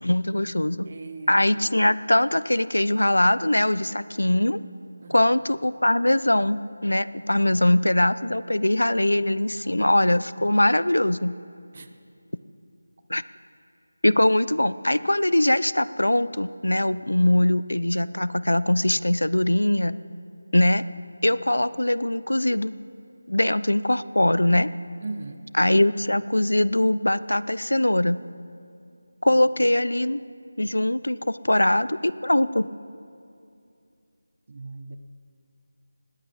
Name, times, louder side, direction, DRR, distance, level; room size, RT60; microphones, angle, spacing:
voice 1, 0.0-0.9 1.3-4.6 5.1-11.4 13.1-13.2 14.0-19.9 20.5-20.9 21.2-22.7 23.3-24.7 25.6-28.2 29.2-30.2 30.6-32.7, left 1 dB, 90° left, 17 dB, 0.5 m, -22 dB
voice 2, 0.8-1.4 5.0-5.3 11.7-11.9 25.0-25.4 29.3-29.4 34.5-35.0, right 3 dB, 40° right, 9 dB, 0.7 m, -38 dB
20.0 x 16.0 x 4.1 m, 2.5 s
figure-of-eight pair, 165°, 0 cm